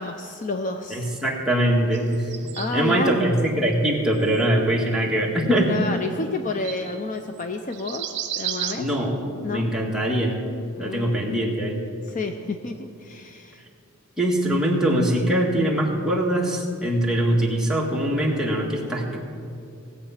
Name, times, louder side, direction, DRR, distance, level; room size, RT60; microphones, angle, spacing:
voice 1, 0.0-1.1 2.6-3.2 5.7-8.0 8.3-8.9 9.4-9.7 10.8-11.4 12.1-13.6, left 3 dB, 35° left, 6 dB, 0.6 m, -30 dB
voice 2, 0.9-2.3 2.7-5.8 8.7-9.1 9.5-10.4 10.8-11.8 14.2-19.2, right 1 dB, 5° right, -3 dB, 1.7 m, -22 dB
sound 1, 1.9-3.0 4.2-4.4 5.0-5.1 6.3-6.4 6.6-7.0 7.4-7.5 7.7-8.8, right 10 dB, 55° right, 1.1 m, -32 dB
18.0 x 8.2 x 5.8 m, 2.6 s
head